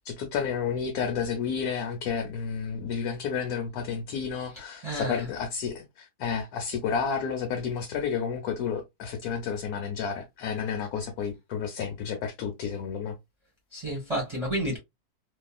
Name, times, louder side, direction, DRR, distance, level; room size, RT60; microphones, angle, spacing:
voice 1, 0.0-13.2, left 6 dB, 85° left, 1.2 m, -31 dB
voice 2, 4.8-5.3 13.7-14.8, right 1 dB, 25° right, 0.9 m, -30 dB
2.7 x 2.4 x 2.2 m
omnidirectional pair, 1.6 m